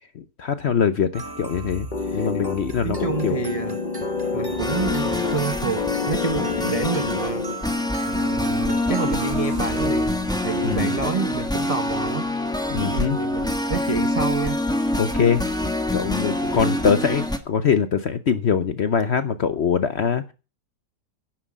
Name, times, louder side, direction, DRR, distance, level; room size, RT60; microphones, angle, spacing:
voice 1, 0.1-1.9 2.1-3.4 10.6-10.9 12.7-13.2 15.0-15.4 15.9-20.3, left 7 dB, 55° left, 0.8 m, -23 dB
sound 1, 1.1-10.8, right 3 dB, 15° right, 0.9 m, -38 dB
sound 2, 1.9-7.9, left 4 dB, 30° left, 1.0 m, -28 dB
voice 2, 2.8-3.8 4.3-7.4 8.0-10.2 10.4-12.3 12.8-14.6 16.5-16.7, right 4 dB, 40° right, 0.5 m, -28 dB
sound 3, 4.6-17.4, left 1 dB, 5° left, 1.2 m, -25 dB
11.0 x 7.7 x 7.4 m
omnidirectional pair, 1.8 m